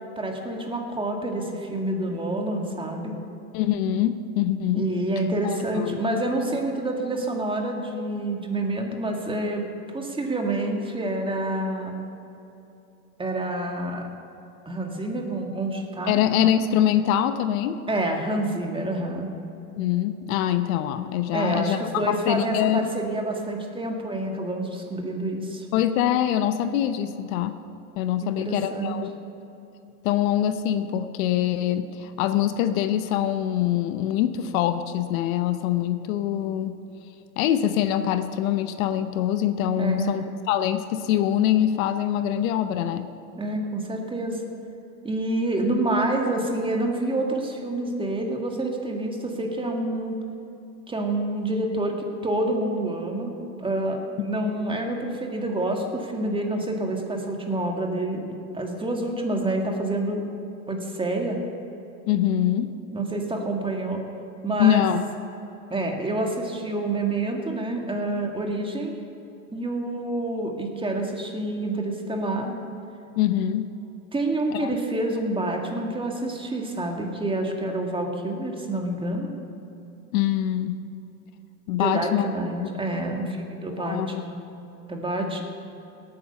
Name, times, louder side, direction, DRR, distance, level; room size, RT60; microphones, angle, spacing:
voice 1, 0.2-3.1 4.7-9.6 9.9-12.0 13.2-14.1 14.7-16.2 17.9-19.3 21.3-25.7 28.2-29.0 39.8-40.2 43.4-44.4 45.0-50.2 50.9-60.2 60.7-61.4 62.9-64.0 64.4-64.8 65.7-69.0 69.5-72.5 74.1-79.3 81.7-84.4 84.9-85.4, right 2 dB, 10° right, 2 dB, 1.8 m, -28 dB
voice 2, 3.5-4.8 5.4-6.0 16.1-17.8 19.8-22.9 25.7-27.6 28.0-29.1 30.0-36.8 37.4-43.1 54.4-54.6 62.1-62.7 64.6-65.0 73.2-73.7 74.5-74.7 80.1-80.8 81.7-82.3 82.6-82.7 83.8-84.2, left 11 dB, 65° left, 10 dB, 0.9 m, -24 dB
17.5 x 8.9 x 5.5 m, 2.9 s
hypercardioid pair, 105°, 44 cm